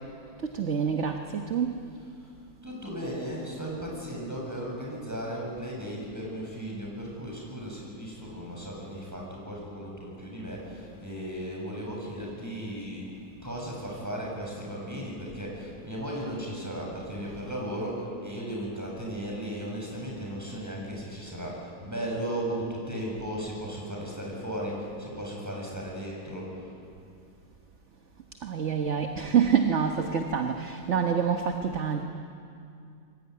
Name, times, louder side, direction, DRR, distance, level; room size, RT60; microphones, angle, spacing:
voice 1, 0.4-1.7 28.4-32.0, right 7 dB, 40° right, 4 dB, 1.4 m, -26 dB
voice 2, 2.0-2.3 2.6-13.2 13.4-26.7, equal, 10° right, -2 dB, 7.6 m, -36 dB
26.5 x 23.0 x 9.6 m, 2.5 s
omnidirectional pair, 2.1 m